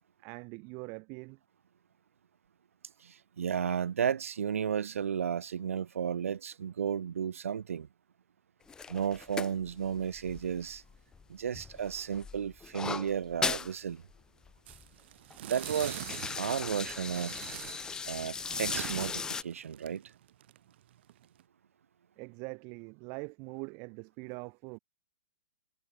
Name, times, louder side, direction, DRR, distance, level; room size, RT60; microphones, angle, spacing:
voice 1, 0.2-1.4 22.2-24.8, right 34 dB, 35° right, 1.5 m, -43 dB
voice 2, 3.0-7.9 8.9-10.8 11.3-14.0 15.4-16.0 16.4-17.4 18.1-20.0, right 8 dB, 85° right, 0.4 m, -33 dB
sound 1, 8.7-11.2 11.5-13.7 14.1-14.2 14.5-14.9 15.3-19.4, left 5 dB, 10° left, 0.4 m, -38 dB
sound 2, 14.7-21.4, right 14 dB, 55° right, 1.3 m, -44 dB
hypercardioid pair, 135°, 7 cm